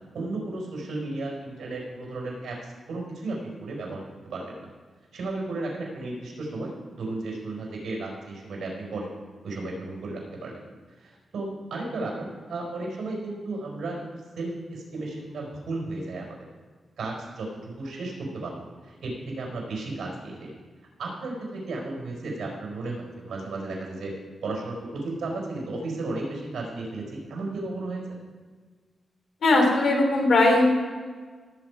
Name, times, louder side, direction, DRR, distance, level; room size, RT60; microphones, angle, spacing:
voice 1, 0.1-4.0 4.3-4.7 5.1-9.1 9.4-10.6 11.0-14.0 14.4-16.3 17.0-20.5 21.0-24.1 24.4-27.0 27.3-28.0, right 2 dB, 85° right, -1 dB, 4.7 m, -34 dB
voice 2, 29.4-30.6, left 2 dB, 75° left, 1 dB, 3.1 m, -19 dB
18.5 x 8.4 x 4.7 m, 1.5 s
wide cardioid pair, 165°, 0 cm